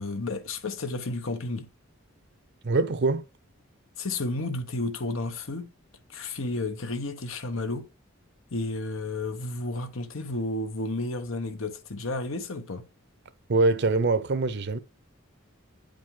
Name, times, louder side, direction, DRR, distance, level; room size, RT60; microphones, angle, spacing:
voice 1, 0.0-1.7 4.0-5.7 6.1-7.9 8.5-12.8, left 2 dB, 75° left, 1.0 m, -32 dB
voice 2, 2.6-3.3 13.5-14.8, right 3 dB, 55° right, 0.6 m, -23 dB
9.0 x 5.2 x 3.7 m
head